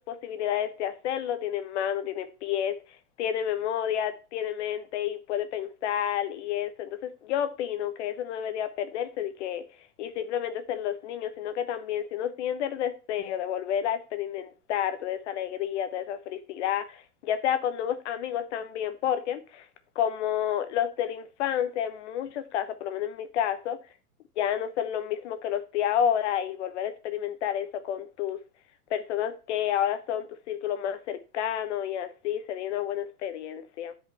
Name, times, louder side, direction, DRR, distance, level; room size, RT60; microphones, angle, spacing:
voice 1, 0.1-2.8 3.2-9.6 10.0-19.7 19.9-23.8 24.4-28.4 28.9-33.9, left 10 dB, 50° left, 0.9 m, -30 dB
10.5 x 5.1 x 4.1 m
supercardioid pair, 160°, 45 cm